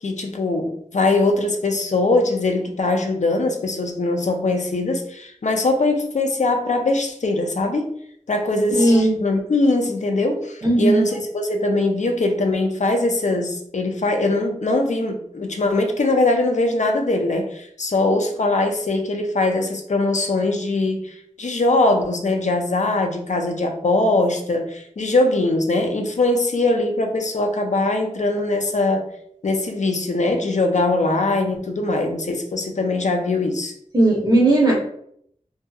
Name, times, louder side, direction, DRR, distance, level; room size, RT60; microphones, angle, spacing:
voice 1, 0.0-7.9 8.3-29.1 29.4-33.7, left 2 dB, 65° left, 4 dB, 0.5 m, -21 dB
voice 2, 8.7-9.2 10.6-11.0 33.9-34.7, right 1 dB, 35° right, -3 dB, 0.8 m, -16 dB
2.7 x 2.6 x 2.3 m, 0.68 s
wide cardioid pair, 60°, 13 cm